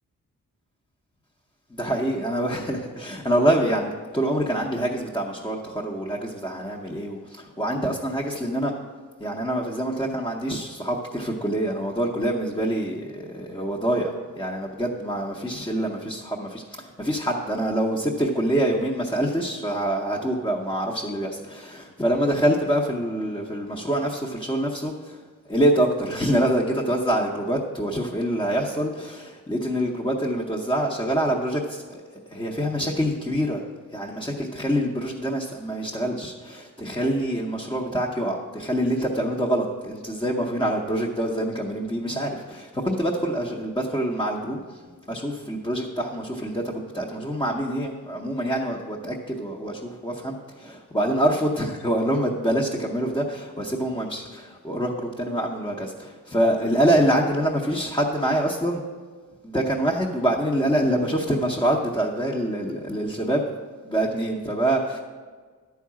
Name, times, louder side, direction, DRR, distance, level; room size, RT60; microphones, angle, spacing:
voice 1, 1.7-8.7 9.2-25.2 25.5-32.0 32.3-33.6 33.9-44.8 45.1-58.8 59.4-63.4 63.8-65.0, right 1 dB, 15° left, -2 dB, 0.8 m, -25 dB
11.0 x 4.7 x 7.3 m, 1.5 s
wide cardioid pair, 160°, 33 cm